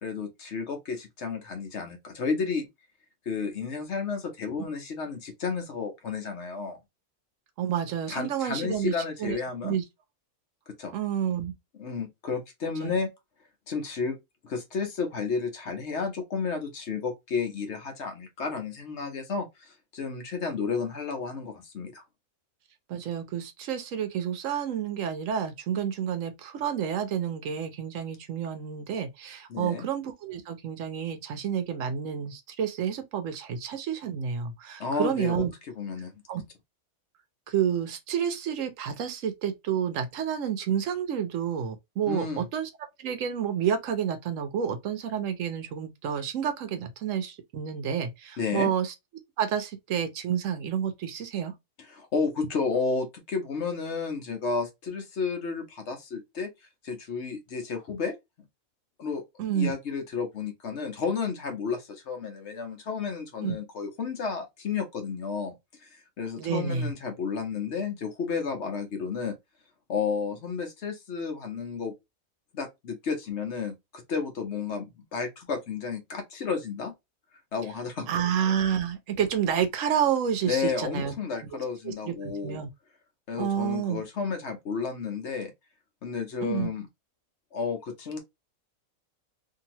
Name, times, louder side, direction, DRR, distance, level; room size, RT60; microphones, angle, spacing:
voice 1, 0.0-2.7 3.3-6.8 8.1-9.8 10.7-10.9 11.8-13.1 13.7-14.2 14.4-22.0 29.5-29.8 34.8-35.4 35.8-36.1 42.1-42.5 48.4-48.7 51.9-56.5 56.8-58.1 59.0-59.2 59.5-65.5 65.8-69.3 69.9-71.9 72.5-76.9 77.5-78.2 80.5-82.6 83.3-85.5 86.0-86.9 87.5-88.2, left 5 dB, 60° left, 1.0 m, -32 dB
voice 2, 7.6-9.4 9.6-9.8 10.9-11.5 12.8-13.0 22.9-35.5 36.3-36.4 37.5-42.7 43.0-48.9 49.4-51.5 59.4-59.8 63.4-63.6 66.4-66.9 78.1-81.1 81.8-82.7 83.4-84.0 86.4-86.7, right 8 dB, 70° right, 0.9 m, -29 dB
2.8 x 2.7 x 2.7 m
omnidirectional pair, 1.5 m